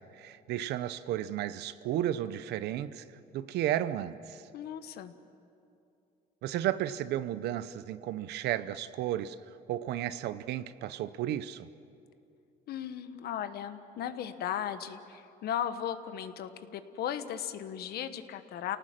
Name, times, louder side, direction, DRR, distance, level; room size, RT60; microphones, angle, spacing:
voice 1, 0.0-3.0 3.3-4.4 6.4-9.4 9.7-11.7, right 12 dB, 80° right, 14 dB, 0.8 m, -33 dB
voice 2, 4.5-5.1 12.7-18.8, left 9 dB, 70° left, 11 dB, 1.3 m, -36 dB
28.5 x 18.5 x 7.6 m, 2.7 s
cardioid pair, 110°, 17 cm